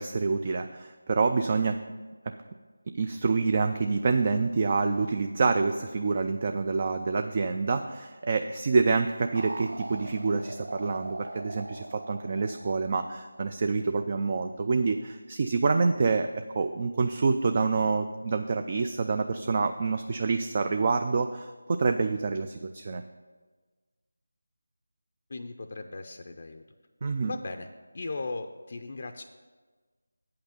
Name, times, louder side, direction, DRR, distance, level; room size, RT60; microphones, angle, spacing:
voice 1, 0.0-1.8 2.3-2.4 2.9-23.0 27.0-27.3, right 4 dB, 35° right, 7 dB, 0.4 m, -27 dB
sound 1, 9.3-13.8, right 1 dB, 75° right, 0.6 m, -41 dB
voice 2, 25.3-26.6 27.3-27.7 27.9-29.2, left 3 dB, 45° left, 6 dB, 0.5 m, -37 dB
8.5 x 5.9 x 6.6 m, 1.4 s
figure-of-eight pair, 170°, 0 cm